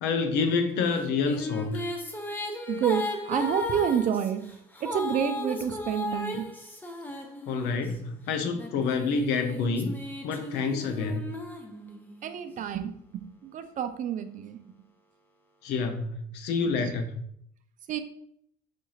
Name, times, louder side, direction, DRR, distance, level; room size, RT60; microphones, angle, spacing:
voice 1, 0.0-1.8 7.5-11.3 15.6-17.2, left 4 dB, 90° left, 6 dB, 0.5 m, -28 dB
sound 1, 0.9-7.9 8.5-12.3, left 2 dB, 10° left, 0.5 m, -36 dB
voice 2, 2.7-4.4 4.8-6.4 12.2-14.6 17.9-18.0, right 8 dB, 50° right, 9 dB, 0.4 m, -29 dB
4.2 x 2.3 x 3.1 m, 0.68 s
cardioid pair, 110°, 17 cm